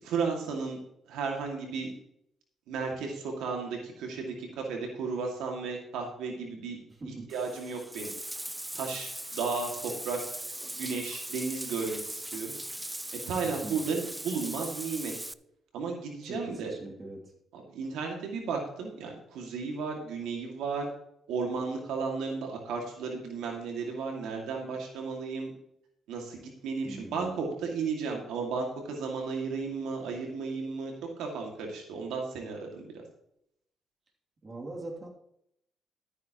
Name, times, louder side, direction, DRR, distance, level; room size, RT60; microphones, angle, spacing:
voice 1, 0.0-1.9 2.7-6.8 7.0-8.1 8.7-10.2 10.8-12.6 13.1-15.1 15.7-16.7 17.5-20.9 21.3-25.5 26.1-33.0, right 4 dB, 90° right, 1 dB, 2.3 m, -34 dB
voice 2, 6.9-7.3 13.4-13.8 16.3-17.3 26.8-27.5 34.4-35.1, right 2 dB, 35° right, -1 dB, 2.9 m, -42 dB
Bathtub (filling or washing), 7.3-15.3, right 1 dB, 10° right, 0.4 m, -39 dB
12.5 x 9.6 x 3.1 m, 0.74 s
cardioid pair, 90°, 0 cm